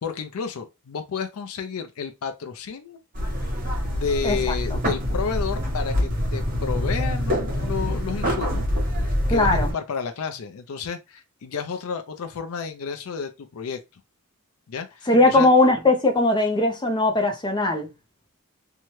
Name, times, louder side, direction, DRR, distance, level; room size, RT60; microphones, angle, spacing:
voice 1, 0.0-3.0 3.9-8.6 9.1-13.8 14.7-15.5, left 6 dB, 70° left, 0.4 m, -31 dB
sound 1, 3.1-9.7, equal, 40° right, 1.1 m, -25 dB
voice 2, 9.3-9.7 15.1-17.9, left 2 dB, 20° left, 0.5 m, -19 dB
2.8 x 2.2 x 3.0 m
head